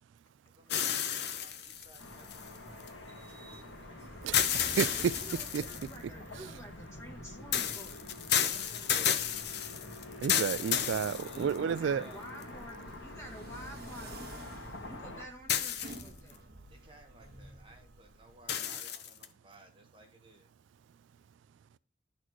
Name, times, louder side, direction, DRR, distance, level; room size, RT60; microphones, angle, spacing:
voice 1, 0.5-3.9 8.4-9.5 10.6-12.2 16.7-20.5, right 1 dB, 30° right, 1.3 m, -57 dB
sound 1, 0.7-2.9 4.3-6.0 7.5-11.8 12.4-12.5 15.5-16.3 18.5-19.3, left 9 dB, 60° left, 0.7 m, -32 dB
sound 2, 1.8-18.7, right 2 dB, 60° right, 1.4 m, -52 dB
Car passing by / Traffic noise roadway noise, 2.0-15.3, left 1 dB, 80° left, 1.7 m, -47 dB
voice 2, 4.2-5.1 5.5-5.6 6.4-6.5 10.2-12.0, right 7 dB, 80° right, 0.3 m, -31 dB
voice 3, 4.9-8.0 11.3-14.3 14.9-16.4, equal, 15° left, 2.1 m, -49 dB
11.0 x 4.2 x 3.0 m
head